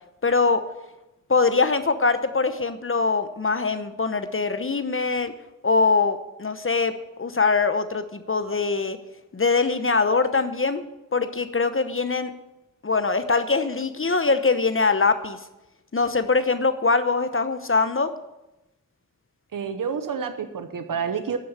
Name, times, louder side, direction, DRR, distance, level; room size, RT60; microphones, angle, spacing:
voice 1, 0.2-0.6 1.3-5.3 5.6-9.0 9.3-10.8 11.1-12.3 12.8-15.4 15.9-18.1, left 4 dB, 40° left, 10 dB, 0.9 m, -22 dB
voice 2, 19.5-21.4, right 6 dB, 85° right, 9 dB, 0.9 m, -29 dB
11.5 x 6.9 x 8.8 m, 0.96 s
cardioid pair, 50°, 32 cm